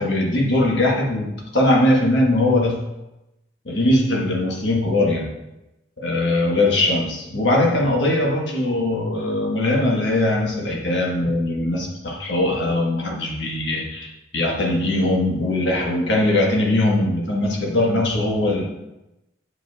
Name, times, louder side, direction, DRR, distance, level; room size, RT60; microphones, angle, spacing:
voice 1, 0.0-2.8 3.6-5.3 6.0-18.6, left 1 dB, 70° left, -1 dB, 1.3 m, -20 dB
8.6 x 5.2 x 2.3 m, 0.95 s
head